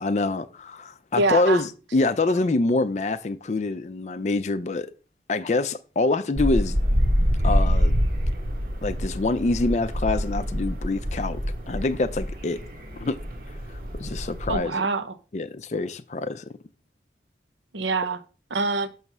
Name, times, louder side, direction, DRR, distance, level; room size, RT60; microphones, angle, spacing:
voice 1, 0.0-4.9 5.3-6.8 7.4-8.0 8.8-11.4 11.7-12.6 13.0-13.2 14.0-14.8 15.3-16.4, left 3 dB, 40° left, 0.4 m, -25 dB
voice 2, 1.2-1.6 14.5-15.2 17.7-18.2 18.5-18.9, right 3 dB, 90° right, 0.8 m, -25 dB
sound 1, 6.4-14.6, equal, 50° right, 1.1 m, -26 dB
6.7 x 3.1 x 6.0 m
head